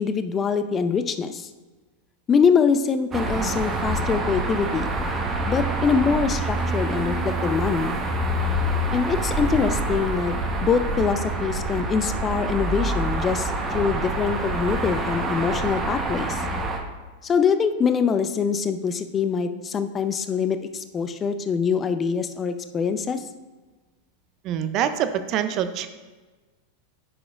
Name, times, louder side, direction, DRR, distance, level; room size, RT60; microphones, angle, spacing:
voice 1, 0.0-1.5 2.3-4.9 5.5-7.9 8.9-10.4 10.6-16.4 17.2-23.2, left 6 dB, 25° left, 10 dB, 0.5 m, -24 dB
sound 1, 3.1-16.8, right 1 dB, 25° right, 1.0 m, -26 dB
voice 2, 24.4-25.9, right 9 dB, 45° right, 10 dB, 0.5 m, -25 dB
11.0 x 4.8 x 2.4 m, 1.3 s
hypercardioid pair, 100°, 0 cm